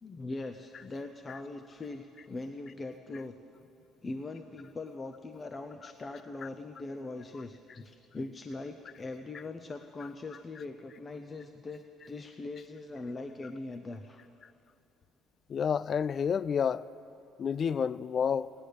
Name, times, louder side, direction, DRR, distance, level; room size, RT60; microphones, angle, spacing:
voice 1, 0.0-3.4 4.0-14.2, left 2 dB, 30° left, 0.7 m, -41 dB
voice 2, 15.5-16.9 17.4-18.5, left 7 dB, 50° left, 0.3 m, -29 dB
16.5 x 10.0 x 6.5 m
hypercardioid pair, 60°, 0 cm